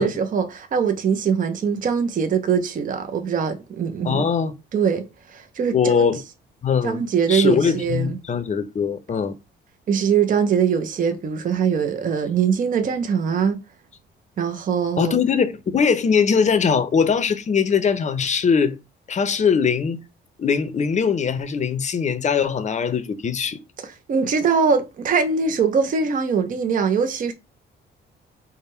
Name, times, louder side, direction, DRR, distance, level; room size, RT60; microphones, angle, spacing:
voice 1, 0.0-4.3 4.7-6.1 6.8-8.2 9.9-13.6 14.4-15.1 23.8-27.3, right 6 dB, 40° right, 0.5 m, -22 dB
voice 2, 4.0-4.5 5.7-6.2 6.6-7.0 7.3-9.3 15.0-18.8 19.1-20.0 20.4-23.6, left 6 dB, 35° left, 0.6 m, -21 dB
3.5 x 2.1 x 4.3 m
cardioid pair, 90°, 20 cm